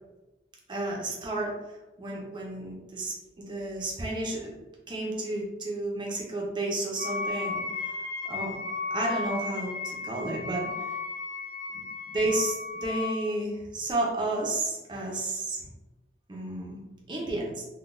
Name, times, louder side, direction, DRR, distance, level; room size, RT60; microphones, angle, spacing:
voice 1, 0.7-1.5 2.0-4.5 4.9-7.6 8.3-8.6 8.9-10.9 12.1-15.6 16.3-16.8 17.1-17.6, right 2 dB, 25° right, -2 dB, 0.5 m, -31 dB
Wind instrument woodwind instrument, 7.0-13.3, left 4 dB, 50° left, 0.6 m, -34 dB
3.7 x 2.2 x 2.5 m, 1.1 s
head